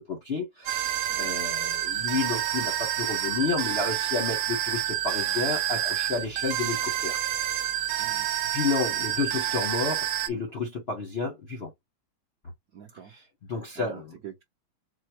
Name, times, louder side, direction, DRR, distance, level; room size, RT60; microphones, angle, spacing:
voice 1, 0.0-0.9 1.2-7.2 8.5-11.7 13.5-14.1, left 4 dB, 45° left, 0.8 m, -31 dB
sound 1, 0.7-10.3, right 12 dB, 85° right, 1.5 m, -28 dB
voice 2, 8.0-8.3 9.3-9.4 12.7-13.1 13.7-14.4, right 9 dB, 65° right, 0.9 m, -45 dB
4.2 x 2.1 x 4.5 m
omnidirectional pair, 2.3 m